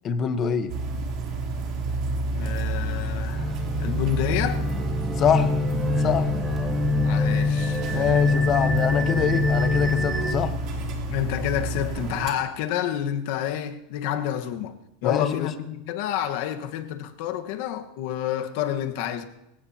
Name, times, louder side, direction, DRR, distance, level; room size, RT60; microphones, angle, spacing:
voice 1, 0.0-0.7 5.2-5.5 6.0-6.3 7.9-10.5 15.0-15.5, left 8 dB, 30° left, 1.1 m, -25 dB
sound 1, 0.7-12.3, right 2 dB, 45° right, 3.2 m, -30 dB
voice 2, 2.3-4.6 7.0-8.3 11.1-14.8 15.0-19.2, left 11 dB, 60° left, 1.4 m, -29 dB
sound 2, 3.3-10.3, left 3 dB, 10° right, 2.0 m, -25 dB
25.5 x 16.0 x 2.9 m
supercardioid pair, 150°, 0 cm